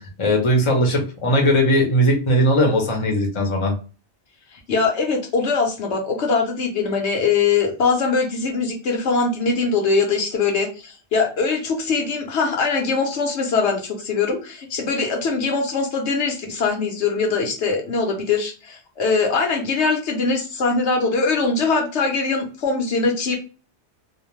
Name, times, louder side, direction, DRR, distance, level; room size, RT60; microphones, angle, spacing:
voice 1, 0.0-3.7, equal, 30° left, 1 dB, 0.7 m, -19 dB
voice 2, 4.7-23.3, left 4 dB, 70° left, 2 dB, 1.0 m, -22 dB
2.4 x 2.2 x 3.1 m, 0.34 s
omnidirectional pair, 1.2 m